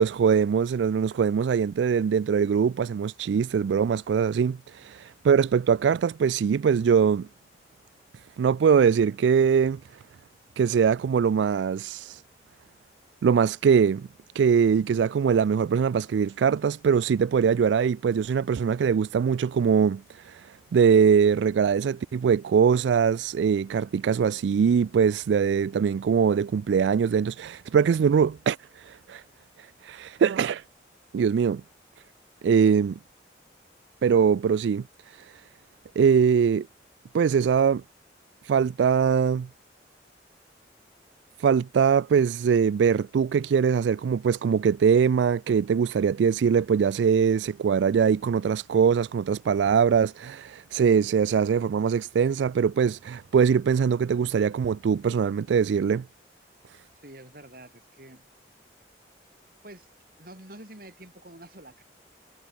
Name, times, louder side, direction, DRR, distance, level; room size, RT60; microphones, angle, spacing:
voice 1, 0.0-7.3 8.4-9.8 10.6-12.2 13.2-14.1 14.3-29.2 29.6-30.6 31.1-31.6 32.4-33.0 34.0-35.3 36.0-36.7 37.1-37.8 38.4-39.5 41.4-56.0, right 6 dB, 85° right, 0.3 m, -22 dB
voice 2, 57.0-58.3 59.6-61.8, right 1 dB, 55° right, 6.7 m, -47 dB
head